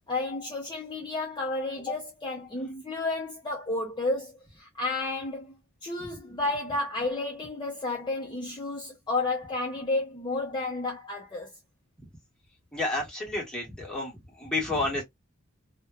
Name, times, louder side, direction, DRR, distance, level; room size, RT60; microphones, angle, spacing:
voice 1, 0.1-5.6 5.8-11.5, left 2 dB, 20° left, 0.6 m, -31 dB
voice 2, 12.7-14.1 14.4-15.0, left 2 dB, 5° left, 1.2 m, -30 dB
2.9 x 2.1 x 2.3 m
head